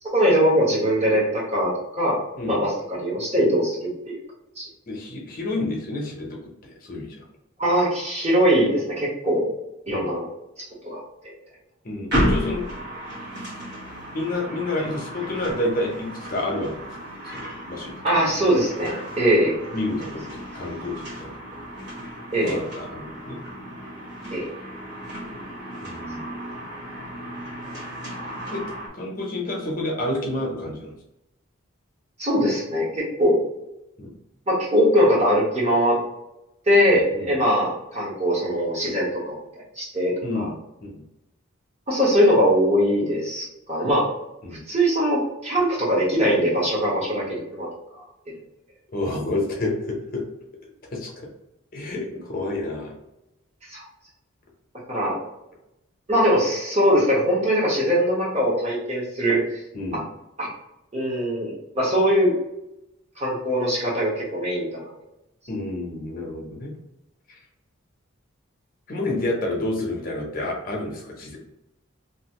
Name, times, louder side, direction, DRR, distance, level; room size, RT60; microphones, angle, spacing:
voice 1, 0.1-2.2 2.5-4.2 4.6-4.7 7.6-9.5 9.9-10.2 10.6-11.0 18.0-19.7 22.3-22.6 24.3-24.5 32.2-33.4 34.5-36.0 36.7-39.4 39.7-40.5 41.9-44.1 44.7-47.7 47.9-48.0 53.7-53.8 54.9-55.2 56.1-59.6 59.9-60.0 60.4-60.5 60.9-62.3 63.2-64.9, equal, 30° right, -6 dB, 1.2 m, -21 dB
voice 2, 4.9-7.2 9.9-10.1 11.8-12.6 14.1-16.9 17.3-17.9 19.7-21.4 22.4-23.4 25.8-26.3 28.5-28.6 28.9-31.0 34.0-34.1 36.9-37.4 40.2-40.5 40.8-41.0 44.4-44.6 48.9-50.2 50.9-51.3 51.7-52.9 59.7-60.0 65.5-66.7 67.3-67.4 68.9-71.4, left 2 dB, 40° left, -1 dB, 0.8 m, -29 dB
sound 1, 12.1-28.9, equal, 50° right, 1.1 m, -33 dB
3.1 x 2.6 x 2.9 m, 0.89 s
head